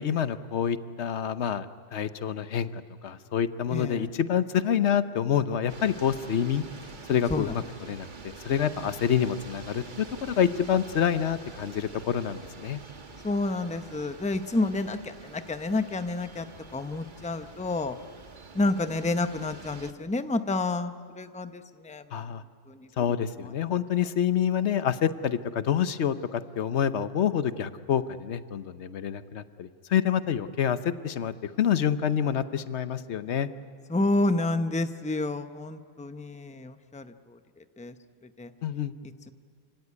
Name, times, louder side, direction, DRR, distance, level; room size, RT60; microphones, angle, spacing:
voice 1, 0.0-6.6 7.1-12.8 22.1-22.4 23.0-33.5 38.6-38.9, left 8 dB, 85° left, 13 dB, 1.1 m, -27 dB
voice 2, 3.7-4.1 7.3-7.5 13.2-16.5 16.7-18.0 18.5-22.2 22.7-22.9 33.9-37.4 37.8-37.9 38.4-38.5, left 2 dB, 10° left, 10 dB, 0.6 m, -29 dB
sound 1, 5.7-19.9, right 4 dB, 50° right, 1.4 m, -46 dB
27.5 x 17.0 x 9.7 m, 2.2 s
omnidirectional pair, 1.1 m